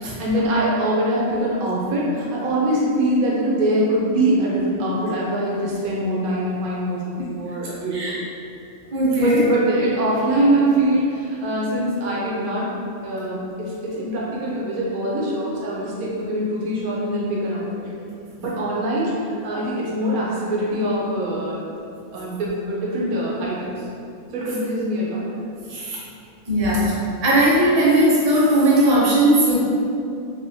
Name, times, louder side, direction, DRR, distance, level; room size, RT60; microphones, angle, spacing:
voice 1, 0.2-8.2 9.2-12.7 13.0-17.6 18.4-21.6 22.1-23.8 24.3-25.2, right 1 dB, 85° right, -5 dB, 1.1 m, -23 dB
voice 2, 8.9-9.5 25.7-26.0 26.5-26.9 27.2-29.6, right 1 dB, 45° right, -8 dB, 0.5 m, -18 dB
2.9 x 2.4 x 2.5 m, 2.5 s
omnidirectional pair, 1.5 m